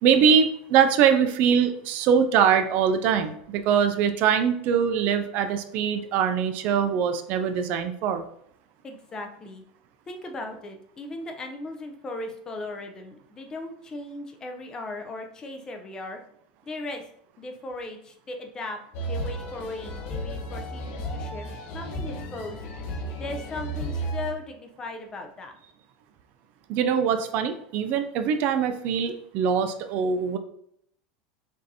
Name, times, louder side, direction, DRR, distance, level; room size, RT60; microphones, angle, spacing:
voice 1, 0.0-8.2 26.7-30.4, right 7 dB, 45° right, 9 dB, 0.3 m, -22 dB
voice 2, 8.8-9.6 10.1-16.2 16.6-17.0 17.4-18.8 19.1-21.5 21.7-22.6 23.1-25.5, left 2 dB, 20° left, 4 dB, 0.5 m, -37 dB
sound 1, 18.9-24.3, right 1 dB, 55° left, 0.7 m, -33 dB
5.2 x 2.6 x 2.7 m, 0.69 s
supercardioid pair, 155°, 4 cm